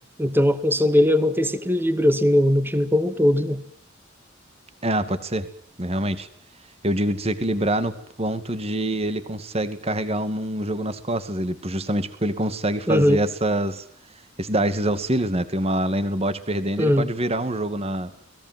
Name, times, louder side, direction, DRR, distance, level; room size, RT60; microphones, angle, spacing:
voice 1, 0.2-3.6 12.9-13.2 16.8-17.1, left 1 dB, 10° right, 11 dB, 2.1 m, -19 dB
voice 2, 4.8-5.5 5.8-6.3 6.8-13.8 14.4-18.1, right 1 dB, 30° right, 11 dB, 2.3 m, -25 dB
29.5 x 21.0 x 7.7 m, 0.62 s
head